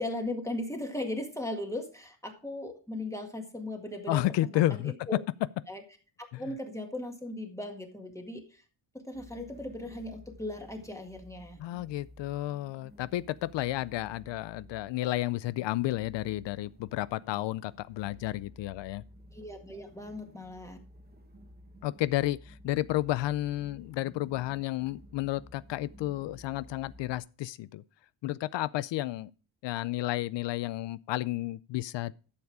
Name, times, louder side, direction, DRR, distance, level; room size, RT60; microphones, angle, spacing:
voice 1, 0.0-5.2 5.7-5.8 6.2-8.6 9.0-11.6 19.3-20.8, left 1 dB, 5° left, 1.8 m, -38 dB
voice 2, 4.1-4.9 6.3-6.4 11.6-19.0 21.8-27.8 28.2-29.3 29.6-32.1, left 15 dB, 70° left, 0.5 m, -31 dB
sound 1, 9.1-27.2, equal, 20° right, 1.3 m, -54 dB
12.0 x 7.2 x 4.8 m
cardioid pair, 145°, 45 cm